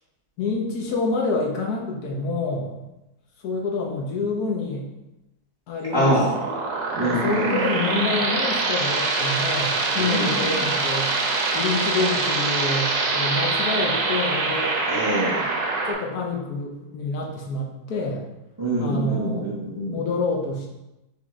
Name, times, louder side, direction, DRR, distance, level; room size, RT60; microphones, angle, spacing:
voice 1, 0.4-2.8 3.4-4.9 5.7-6.6 7.0-11.2 11.5-14.7 15.9-18.2 18.8-19.5 19.9-20.7, left 3 dB, 75° left, -1 dB, 1.2 m, -27 dB
voice 2, 5.9-6.2 6.9-7.5 10.0-10.3 14.9-15.4 18.6-20.0, right 1 dB, 20° right, -6 dB, 0.8 m, -24 dB
sound 1, 5.9-15.9, right 3 dB, 80° right, 1.2 m, -24 dB
4.2 x 3.0 x 3.5 m, 0.95 s
omnidirectional pair, 1.7 m